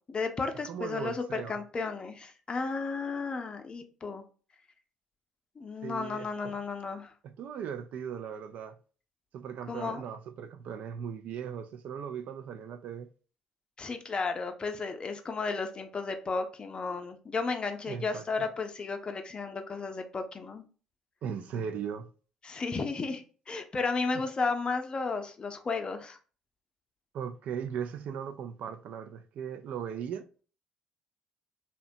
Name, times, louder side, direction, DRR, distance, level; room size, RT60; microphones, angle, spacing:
voice 1, 0.1-4.2 5.6-7.1 9.7-10.0 13.8-20.6 22.4-26.2, left 4 dB, 35° left, 0.5 m, -33 dB
voice 2, 0.7-1.5 5.8-6.5 7.2-8.7 9.3-13.1 17.9-18.2 21.2-22.1 27.1-30.2, right 7 dB, 65° right, 0.3 m, -38 dB
2.7 x 2.1 x 2.5 m
hypercardioid pair, 55°, 3 cm